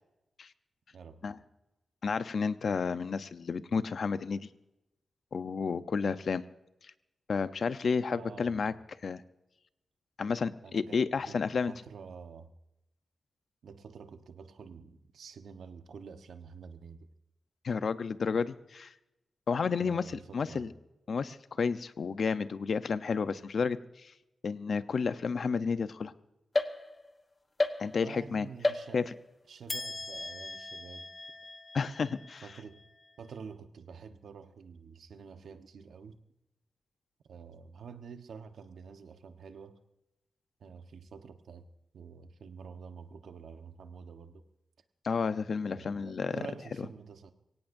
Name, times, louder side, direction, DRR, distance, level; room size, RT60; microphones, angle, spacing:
voice 1, 0.9-1.4 8.1-8.8 10.6-12.5 13.6-17.1 19.8-20.7 28.0-29.1 29.5-31.1 32.4-32.8 33.2-36.2 37.3-39.8 40.6-41.7 41.9-44.4 45.7-47.3, right 6 dB, 90° right, 8 dB, 1.2 m, -48 dB
voice 2, 2.0-4.5 5.3-6.4 7.3-8.7 9.0-9.2 10.2-11.7 17.6-18.9 19.5-20.7 21.1-24.1 24.4-26.1 27.8-28.5 28.9-29.0 31.7-32.4 45.0-46.4, left 5 dB, 65° left, 12 dB, 0.8 m, -31 dB
sound 1, 26.5-27.2 27.6-28.2 28.6-29.3 29.7-33.1, left 2 dB, 30° left, 1.2 m, -35 dB
23.5 x 17.5 x 2.7 m, 0.92 s
wide cardioid pair, 90°, 0 cm